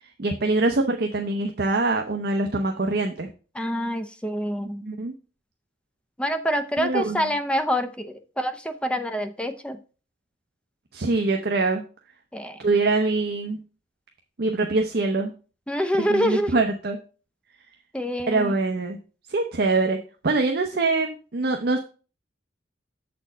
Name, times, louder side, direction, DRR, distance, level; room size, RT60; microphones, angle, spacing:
voice 1, 0.0-3.3 4.8-5.1 6.8-7.3 10.9-11.8 12.6-13.6 14.4-15.3 16.1-17.0 18.3-19.0 19.3-20.0 20.2-21.8, right 3 dB, 55° right, 4 dB, 0.7 m, -24 dB
voice 2, 3.5-4.8 6.2-9.8 12.3-12.6 15.7-16.6 17.9-18.5, equal, 5° left, 8 dB, 0.6 m, -26 dB
7.2 x 4.3 x 5.4 m, 0.36 s
head